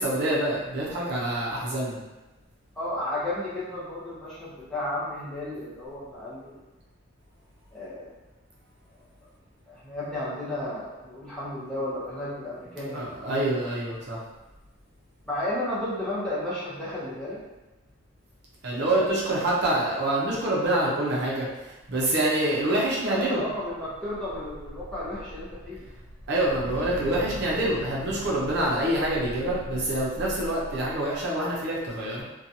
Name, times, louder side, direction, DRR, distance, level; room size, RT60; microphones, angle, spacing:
voice 1, 0.0-2.0 12.9-14.2 18.6-23.4 26.3-32.2, right 1 dB, 50° right, -5 dB, 0.6 m, -26 dB
voice 2, 2.8-6.6 7.7-8.1 9.7-13.3 15.2-17.4 18.7-19.1 23.1-25.8, left 1 dB, 5° left, -10 dB, 0.6 m, -33 dB
sound 1, 23.0-31.3, equal, 80° left, 0.5 m, -41 dB
2.7 x 2.3 x 2.7 m, 1.1 s
head